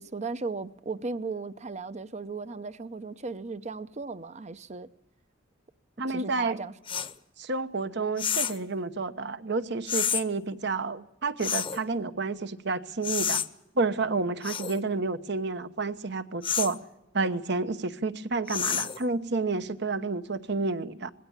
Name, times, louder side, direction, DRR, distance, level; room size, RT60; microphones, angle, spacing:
voice 1, 0.0-4.9 6.1-7.1, right 4 dB, 35° right, 0.7 m, -36 dB
voice 2, 6.0-6.6 7.4-13.4 13.8-16.8 17.1-21.1, right 3 dB, 60° right, 1.0 m, -30 dB
sound 1, 6.9-7.1 8.2-8.6 9.9-10.2 11.4-11.8 13.0-13.5 14.4-14.8 16.4-16.8 18.5-19.0, left 8 dB, 25° left, 0.8 m, -29 dB
20.5 x 16.5 x 8.9 m
head